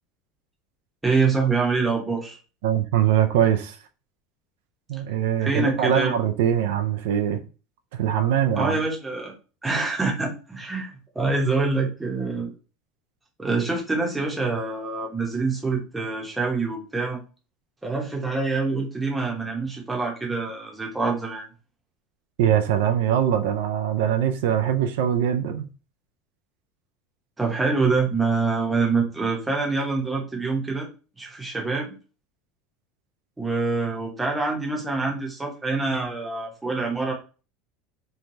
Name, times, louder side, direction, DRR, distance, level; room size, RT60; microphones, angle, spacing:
voice 1, 1.0-2.4 5.4-6.2 8.6-9.3 9.6-12.5 13.4-17.2 17.8-21.5 27.4-30.9 31.2-31.9 33.4-37.1, right 3 dB, 10° right, 0.8 m, -25 dB
voice 2, 2.6-3.8 4.9-7.4 7.9-8.8 22.4-25.7, right 10 dB, 85° right, 0.3 m, -22 dB
3.1 x 2.2 x 2.6 m
supercardioid pair, 145°, 0 cm